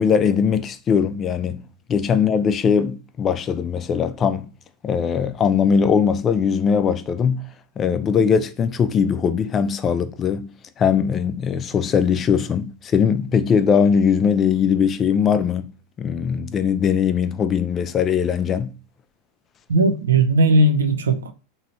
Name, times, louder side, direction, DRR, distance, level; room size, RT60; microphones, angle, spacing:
voice 1, 0.0-1.6 1.9-4.5 4.8-7.4 7.8-10.5 10.8-15.7 16.0-18.7, left 7 dB, 30° left, 0.3 m, -20 dB
voice 2, 19.7-21.3, right 2 dB, 90° right, 0.4 m, -17 dB
3.0 x 2.7 x 2.6 m
hypercardioid pair, 100°, 0 cm